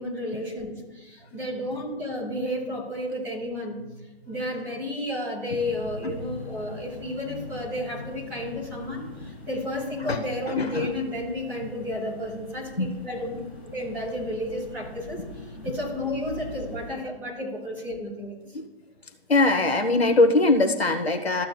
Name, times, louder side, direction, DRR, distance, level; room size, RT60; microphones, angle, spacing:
voice 1, 0.0-3.8 4.2-13.4 13.7-18.4, left 1 dB, 5° right, -6 dB, 1.6 m, -32 dB
sound 1, 5.5-17.0, left 3 dB, 10° left, 0.6 m, -42 dB
voice 2, 10.5-10.9 12.8-12.9 18.5-18.7 19.3-21.5, left 2 dB, 70° left, 6 dB, 1.1 m, -21 dB
14.0 x 7.5 x 2.3 m, 1.1 s
figure-of-eight pair, 150°, 32 cm